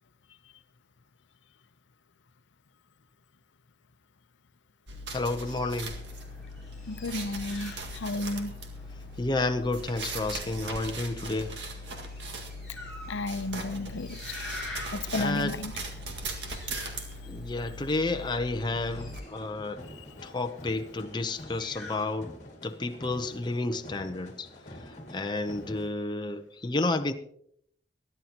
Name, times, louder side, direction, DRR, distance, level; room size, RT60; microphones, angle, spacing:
sound 1, 4.9-19.2, right 1 dB, 70° right, 1.9 m, -39 dB
voice 1, 5.1-6.0 9.2-11.8 15.1-15.6 17.3-19.8 20.2-22.4 22.6-27.1, left 2 dB, 25° left, 0.7 m, -31 dB
sound 2, 5.4-22.0, left 2 dB, ahead, 6.2 m, -48 dB
voice 2, 6.9-8.5 12.7-14.4 14.9-15.7 19.9-20.0, left 2 dB, 80° left, 0.7 m, -33 dB
sound 3, 18.4-25.9, left 1 dB, 40° left, 2.3 m, -47 dB
23.5 x 11.0 x 2.9 m
head